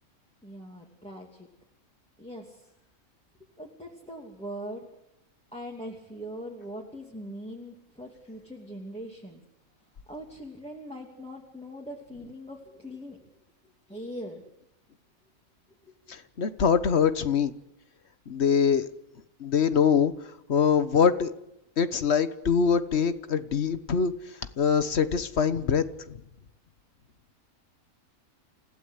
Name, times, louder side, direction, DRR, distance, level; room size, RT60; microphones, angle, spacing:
voice 1, 0.4-1.5 2.2-2.7 3.6-4.9 5.5-9.4 10.1-13.2 13.9-14.4, equal, 5° left, -1 dB, 2.6 m, -41 dB
voice 2, 16.1-17.5 18.3-18.9 19.4-20.1 20.5-21.3 21.8-24.1 24.6-25.8, left 6 dB, 50° left, 13 dB, 1.3 m, -23 dB
28.5 x 16.0 x 8.2 m, 0.83 s
omnidirectional pair, 1.5 m